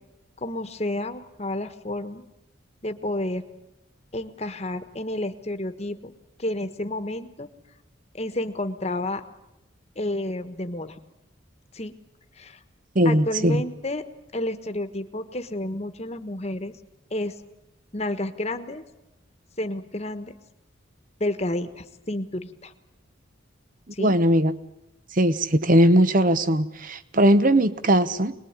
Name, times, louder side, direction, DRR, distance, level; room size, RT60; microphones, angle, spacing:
voice 1, 0.4-2.2 2.8-3.5 4.1-6.1 6.4-7.5 8.1-9.2 10.0-11.0 11.7-11.9 12.4-12.6 13.0-14.0 14.3-16.7 17.1-17.3 17.9-18.8 19.6-20.3 21.2-22.7 23.9-24.1, left 1 dB, 30° left, 9 dB, 1.4 m, -30 dB
voice 2, 12.9-13.6 24.0-24.5 25.1-28.3, right 1 dB, 40° right, 14 dB, 0.9 m, -19 dB
25.5 x 20.5 x 9.7 m, 0.93 s
head